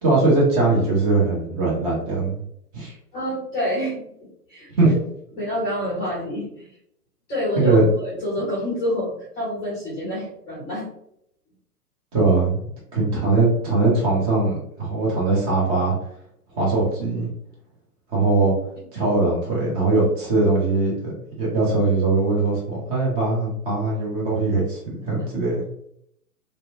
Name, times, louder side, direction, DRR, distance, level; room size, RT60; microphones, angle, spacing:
voice 1, 0.0-2.4 2.7-2.9 4.8-4.9 7.6-7.8 12.1-15.9 16.6-17.3 18.1-18.5 18.9-21.1 21.4-25.6, right 3 dB, 25° right, -5 dB, 0.8 m, -21 dB
voice 2, 3.1-4.1 4.5-5.0 5.3-6.7 7.3-10.9, equal, 10° left, -8 dB, 0.6 m, -27 dB
2.8 x 2.1 x 2.6 m, 0.74 s
figure-of-eight pair, 115°, 47 cm